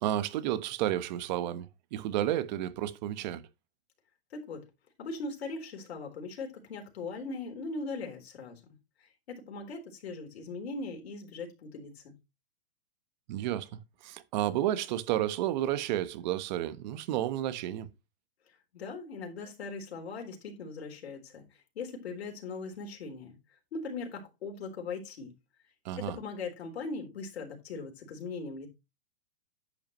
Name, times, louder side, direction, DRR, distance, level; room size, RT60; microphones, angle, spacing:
voice 1, 0.0-3.4 13.3-13.7 14.0-17.9 25.8-26.2, right 12 dB, 45° right, 1.2 m, -31 dB
voice 2, 4.3-4.7 5.0-12.1 18.5-23.3 23.7-25.3 26.0-28.7, left 3 dB, 70° left, 3.9 m, -40 dB
11.0 x 8.5 x 3.1 m
hypercardioid pair, 145°, 32 cm